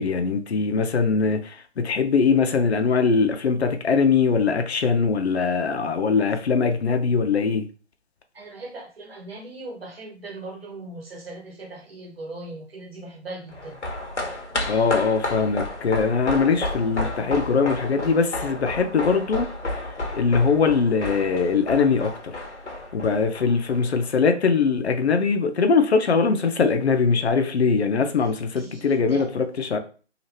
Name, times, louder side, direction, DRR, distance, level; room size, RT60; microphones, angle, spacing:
voice 1, 0.0-7.6 14.7-19.5 20.1-22.3 22.9-29.8, left 5 dB, 70° left, 0.6 m, -21 dB
voice 2, 8.3-13.8 28.5-29.3, right 2 dB, 60° right, 1.1 m, -39 dB
sound 1, 13.5-24.1 24.3-24.4, left 2 dB, 90° left, 0.9 m, -31 dB
2.8 x 2.4 x 3.1 m
figure-of-eight pair, 150°, 34 cm